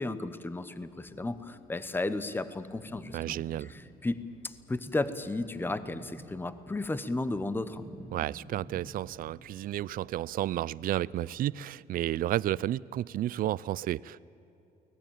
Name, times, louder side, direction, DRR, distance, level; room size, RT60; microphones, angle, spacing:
voice 1, 0.0-7.8, left 2 dB, 10° left, 13 dB, 1.0 m, -34 dB
sound 1, 0.8-11.5, left 1 dB, 75° left, 3.5 m, -59 dB
sound 2, 2.7-4.3 5.2-6.7 7.1-9.5, right 2 dB, 15° right, 2.6 m, -50 dB
voice 2, 3.1-3.7 8.1-14.2, right 13 dB, 60° right, 22 dB, 0.5 m, -32 dB
24.0 x 18.5 x 9.0 m, 2.9 s
cardioid pair, 110°, 17 cm